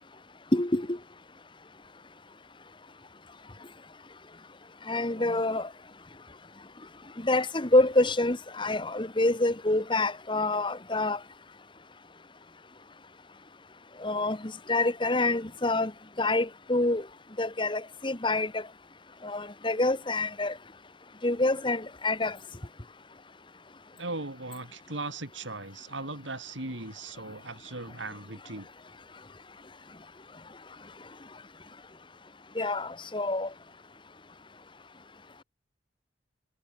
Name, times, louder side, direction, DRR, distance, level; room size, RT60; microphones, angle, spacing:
voice 1, 0.5-1.0 4.9-5.7 7.2-11.2 14.0-15.9 16.2-17.1 17.4-18.6 19.2-20.5 21.2-22.4 32.5-33.5, left 2 dB, 25° left, 1.3 m, -27 dB
voice 2, 24.0-28.7, right 2 dB, 90° right, 5.5 m, -38 dB
head